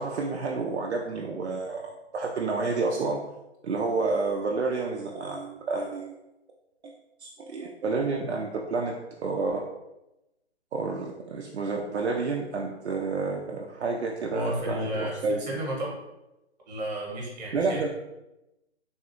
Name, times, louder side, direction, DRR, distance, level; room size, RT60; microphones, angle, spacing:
voice 1, 0.0-3.2 3.6-6.2 6.8-6.9 7.2-8.9 9.2-9.6 10.7-15.4 17.5-17.9, right 3 dB, 70° right, -1 dB, 0.5 m, -29 dB
voice 2, 14.3-15.9 16.7-17.9, equal, 40° right, -3 dB, 1.1 m, -32 dB
3.4 x 2.2 x 2.9 m, 0.95 s
figure-of-eight pair, 140°, 35 cm